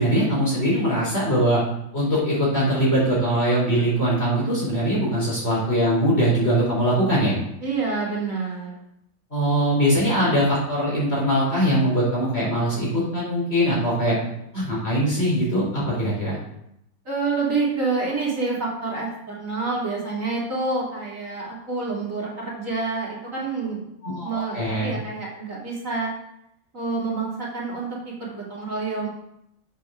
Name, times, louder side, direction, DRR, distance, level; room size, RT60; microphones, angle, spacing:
voice 1, 0.0-1.6 1.9-7.4 9.3-14.1 14.5-16.4 24.0-24.9, equal, 35° left, -6 dB, 4.7 m, -22 dB
voice 2, 7.6-8.7 17.0-23.9 24.2-26.1 26.7-27.9 28.2-29.1, right 3 dB, 45° right, -6 dB, 3.3 m, -27 dB
7.5 x 7.5 x 6.6 m, 0.80 s
omnidirectional pair, 1.9 m